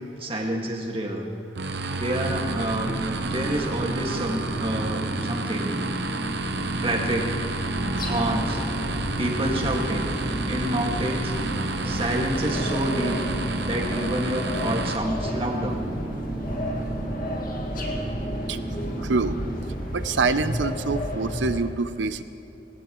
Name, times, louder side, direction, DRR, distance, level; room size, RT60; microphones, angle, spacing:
voice 1, 0.2-1.2 1.9-3.0 3.2-5.7 6.8-7.3 8.0-8.6 9.2-10.1 10.5-11.3 11.8-13.2 13.6-15.8, right 1 dB, 30° right, 0 dB, 1.9 m, -28 dB
sound 1, 1.6-15.0, right 2 dB, 65° right, 0.9 m, -30 dB
sound 2, 2.3-19.6, right 2 dB, 10° right, 0.9 m, -34 dB
sound 3, 7.7-21.6, equal, 50° left, 2.0 m, -33 dB
voice 2, 19.0-19.4 19.9-22.2, right 4 dB, 90° right, 13 dB, 0.6 m, -25 dB
19.5 x 18.5 x 3.1 m, 2.9 s
head